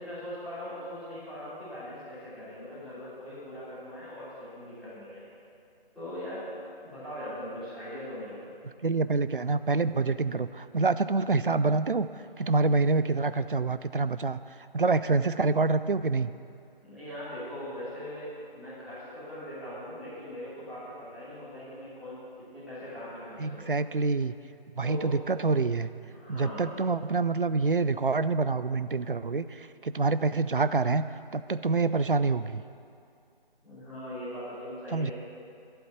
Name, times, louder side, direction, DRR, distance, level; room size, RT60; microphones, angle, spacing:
voice 1, 0.0-5.2 5.9-6.5 6.8-8.5 16.8-23.7 24.8-25.2 26.1-26.8 33.6-35.1, equal, ahead, -18 dB, 3.2 m, -40 dB
voice 2, 8.8-12.1 12.4-14.4 14.7-16.3 23.4-24.3 24.8-25.9 26.3-31.0 31.3-32.6 34.9-35.1, right 3 dB, 60° right, 13 dB, 0.6 m, -26 dB
11.5 x 8.0 x 9.1 m, 2.4 s
figure-of-eight pair, 160°, 29 cm